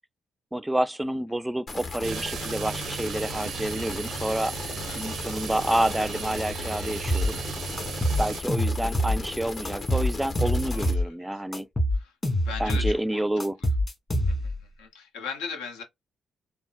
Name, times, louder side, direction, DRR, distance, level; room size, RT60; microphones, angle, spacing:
voice 1, 0.5-4.5 5.0-7.4 8.2-11.7 12.6-13.6, right 1 dB, 10° right, 0.3 m, -28 dB
sound 1, 1.7-10.9, left 3 dB, 50° left, 0.9 m, -36 dB
sound 2, 2.0-8.4, right 8 dB, 70° right, 0.5 m, -36 dB
voice 2, 4.9-5.3 7.7-8.0 10.7-11.1 11.9-12.1 12.4-13.2 14.3-15.8, left 5 dB, 85° left, 0.7 m, -39 dB
sound 3, 7.1-7.3 7.8-9.2 9.6-11.1 11.5-13.0 13.4-14.6, equal, 30° left, 1.4 m, -25 dB
3.6 x 2.0 x 2.3 m
hypercardioid pair, 50°, 0 cm